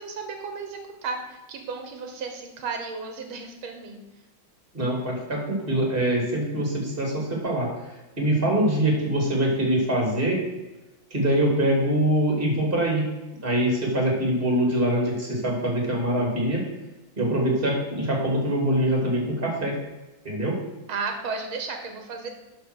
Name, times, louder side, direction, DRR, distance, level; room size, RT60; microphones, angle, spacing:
voice 1, 0.0-4.0 20.9-22.3, right 4 dB, 85° right, 5 dB, 2.0 m, -34 dB
voice 2, 4.7-7.7 8.2-10.4 11.1-13.0 13.4-16.6 17.2-19.7 20.2-20.5, right 1 dB, 25° right, -1 dB, 3.0 m, -24 dB
11.5 x 4.5 x 6.3 m, 1.1 s
omnidirectional pair, 2.2 m